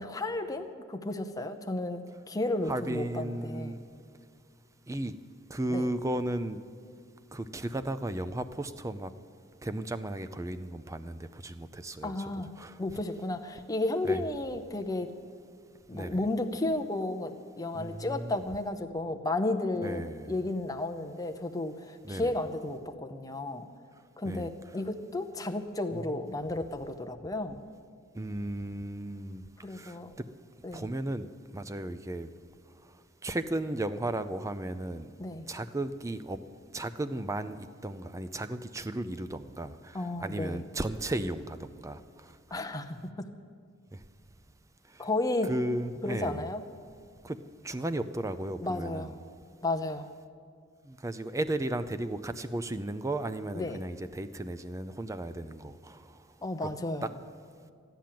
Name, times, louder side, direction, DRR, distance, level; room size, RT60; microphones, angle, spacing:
voice 1, 0.0-3.7 5.7-5.9 12.0-12.5 12.8-15.1 15.9-23.7 24.2-27.6 29.6-30.1 30.6-30.9 35.2-35.5 39.9-40.6 42.5-43.3 45.0-45.5 46.0-46.6 48.6-49.1 49.6-50.1 53.5-53.8 56.4-57.2, left 2 dB, 20° left, 6 dB, 0.8 m, -33 dB
voice 2, 2.7-3.9 4.9-5.1 5.5-6.6 7.3-9.1 9.6-12.3 12.6-12.8 14.1-14.2 15.9-16.2 17.7-18.4 19.8-20.3 22.0-22.3 24.3-24.5 26.1-26.2 28.1-29.4 29.7-30.0 30.7-31.3 31.5-32.3 33.2-35.1 35.5-36.4 36.7-42.0 45.4-46.4 47.2-47.4 47.6-49.1 50.9-56.0 56.6-56.7, right 1 dB, 15° right, 11 dB, 0.5 m, -35 dB
13.5 x 10.5 x 7.6 m, 2.3 s
head